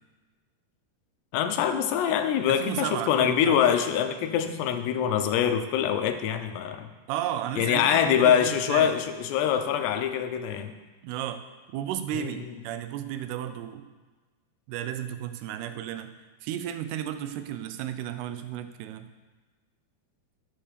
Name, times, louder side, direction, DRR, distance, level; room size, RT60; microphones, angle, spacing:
voice 1, 1.3-6.9 7.6-10.7 12.2-12.3, left 9 dB, 85° left, 8 dB, 2.9 m, -24 dB
voice 2, 2.5-3.7 7.1-8.9 11.0-11.4 11.7-13.9 14.7-16.1 16.4-19.1, right 11 dB, 80° right, 10 dB, 2.7 m, -33 dB
11.0 x 6.9 x 6.7 m, 1.3 s
omnidirectional pair, 4.8 m